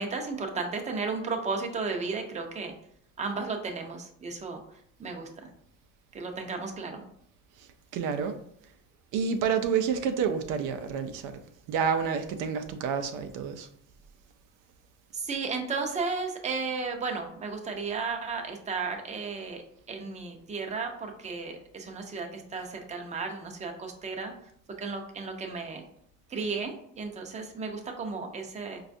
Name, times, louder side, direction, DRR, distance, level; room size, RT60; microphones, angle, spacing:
voice 1, 0.0-2.7 3.2-4.6 5.0-5.5 6.1-7.0 15.1-19.6 19.9-24.3 24.8-25.8 26.3-28.8, right 4 dB, 20° right, 0.6 m, -34 dB
voice 2, 7.6-8.4 8.6-8.7 9.1-11.4 11.7-13.7, right 6 dB, 80° right, 0.5 m, -29 dB
4.3 x 2.3 x 2.5 m
cardioid pair, 115°, 31 cm